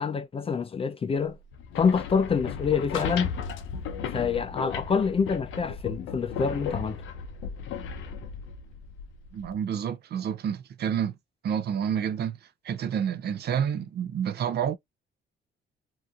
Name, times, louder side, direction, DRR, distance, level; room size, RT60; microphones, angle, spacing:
voice 1, 0.0-1.4 1.8-3.3 4.1-7.0, left 6 dB, 30° left, 0.4 m, -26 dB
sound 1, 1.5-9.5, left 6 dB, 80° left, 0.5 m, -35 dB
voice 2, 9.3-11.1 11.4-12.4 12.6-14.8, right 8 dB, 55° right, 0.4 m, -29 dB
2.8 x 2.5 x 2.3 m
cardioid pair, 90°, 20 cm